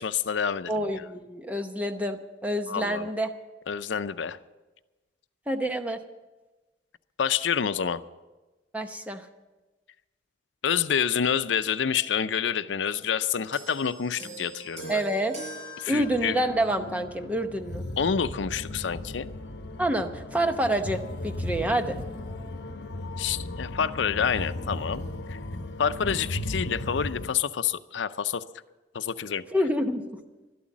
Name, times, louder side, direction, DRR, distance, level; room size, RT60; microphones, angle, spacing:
voice 1, 0.0-1.0 2.7-3.1 3.7-4.4 7.2-8.0 10.6-15.0 15.8-16.4 18.0-19.3 23.2-25.0 25.3-25.4 25.8-28.4 28.9-29.5, left 7 dB, 90° left, 12 dB, 0.5 m, -28 dB
voice 2, 0.7-3.3 5.5-6.0 8.7-9.3 14.9-15.4 15.9-17.8 19.8-22.0 29.5-30.2, right 1 dB, 10° right, 6 dB, 0.8 m, -27 dB
sound 1, 13.5-17.1 18.0-18.2, right 2 dB, 40° right, 5.9 m, -43 dB
sound 2, 16.0-27.3, left 1 dB, 70° left, 0.9 m, -36 dB
12.5 x 12.0 x 7.3 m, 1.2 s
head